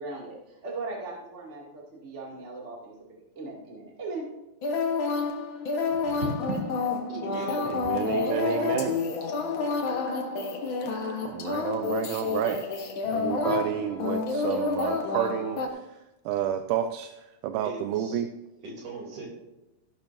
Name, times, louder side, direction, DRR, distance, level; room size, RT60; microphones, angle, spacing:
voice 1, 0.0-4.2 5.9-6.3 7.8-8.2 8.7-8.8 12.4-12.6 13.0-13.3, right 3 dB, 25° right, 2.2 m, -39 dB
sound 1, 4.6-15.7, left 4 dB, 70° left, 1.2 m, -29 dB
voice 2, 7.1-7.7 17.6-18.2 18.6-19.3, right 3 dB, 60° right, 4.4 m, -40 dB
voice 3, 7.7-9.0 11.0-12.6 13.1-15.8 16.3-18.3, right 10 dB, 80° right, 2.0 m, -30 dB
15.5 x 11.5 x 2.7 m
omnidirectional pair, 4.0 m